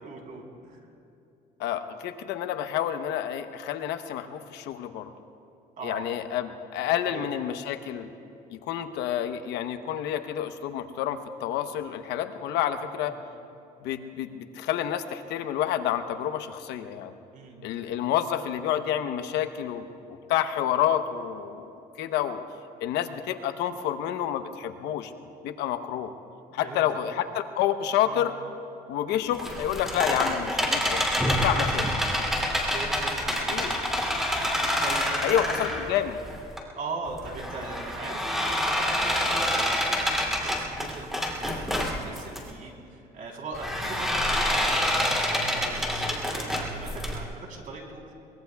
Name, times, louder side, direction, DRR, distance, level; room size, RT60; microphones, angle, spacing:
voice 1, 0.0-0.9 5.8-6.1 7.1-7.3 12.8-13.2 17.3-17.8 26.6-26.8 28.0-28.2 32.6-33.8 34.8-35.6 36.7-48.1, right 3 dB, 55° right, 0 dB, 3.5 m, -40 dB
voice 2, 1.6-5.1 5.8-8.1 8.5-13.1 13.8-17.1 17.6-22.4 22.8-25.1 25.4-26.1 26.5-27.3 27.6-28.4 28.9-31.9 33.5-33.8 35.2-36.2, left 10 dB, 90° left, 8 dB, 0.9 m, -29 dB
sound 1, 29.3-36.6 37.1-42.4 43.5-47.2, equal, ahead, 2.7 m, -27 dB
23.5 x 22.0 x 2.3 m, 2.7 s
cardioid pair, 110°, 17 cm